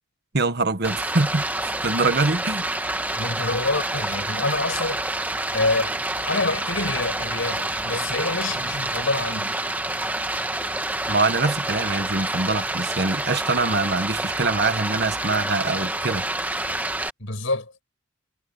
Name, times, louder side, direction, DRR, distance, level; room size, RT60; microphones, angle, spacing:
voice 1, 0.3-1.4 1.8-2.7 11.1-16.2, right 3 dB, 50° right, 1.4 m, -24 dB
Stream, 0.8-17.1, right 2 dB, 10° right, 1.3 m, -28 dB
voice 2, 3.1-5.0 5.5-9.6 17.2-17.7, left 2 dB, 65° left, 6.1 m, -27 dB
head